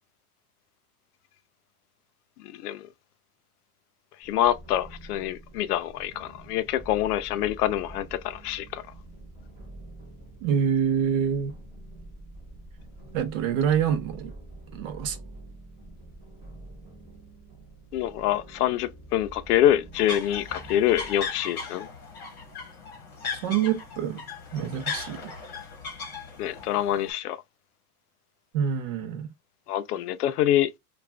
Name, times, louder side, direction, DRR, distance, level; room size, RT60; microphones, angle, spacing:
voice 1, 4.2-8.8 17.9-21.9 26.4-27.4 29.7-30.7, left 12 dB, 85° left, 0.6 m, -25 dB
sound 1, 4.2-21.3, right 1 dB, 15° right, 1.1 m, -46 dB
voice 2, 10.4-11.5 13.1-14.3 14.7-15.2 23.4-24.2 24.5-25.3 28.5-29.3, right 8 dB, 60° right, 0.8 m, -26 dB
sound 2, 19.9-27.1, left 5 dB, 20° left, 1.0 m, -37 dB
2.5 x 2.3 x 3.2 m
supercardioid pair, 165°, 44 cm